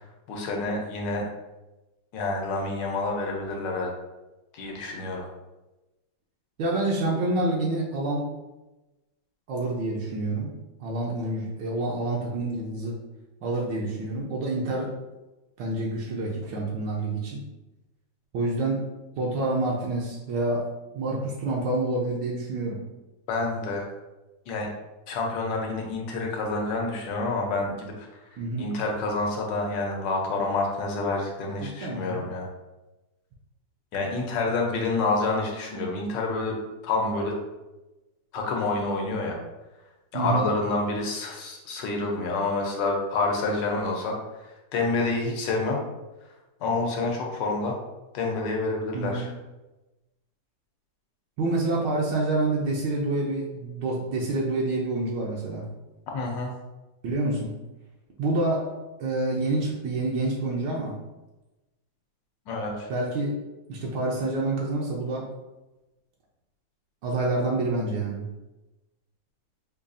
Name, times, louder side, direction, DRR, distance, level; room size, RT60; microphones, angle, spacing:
voice 1, 0.3-1.3 2.1-3.9 4.5-5.2 23.3-23.8 24.5-24.7 25.1-28.2 28.6-32.5 33.9-36.6 36.8-37.3 38.3-39.4 40.1-45.8 46.6-47.8 48.1-49.3 56.1-56.5 62.5-62.9, left 3 dB, 80° left, 0 dB, 1.3 m, -28 dB
voice 2, 6.6-8.3 9.5-10.5 10.8-13.0 13.4-14.9 15.6-17.4 18.3-18.8 19.2-20.7 20.9-22.8 28.4-28.7 31.6-32.2 40.1-40.5 48.9-49.3 51.4-55.7 57.0-57.5 58.2-58.7 59.0-60.9 62.9-63.4 63.7-65.3 67.0-68.3, right 2 dB, 75° right, -3 dB, 1.2 m, -27 dB
5.2 x 2.3 x 2.5 m, 1.1 s
omnidirectional pair, 2.0 m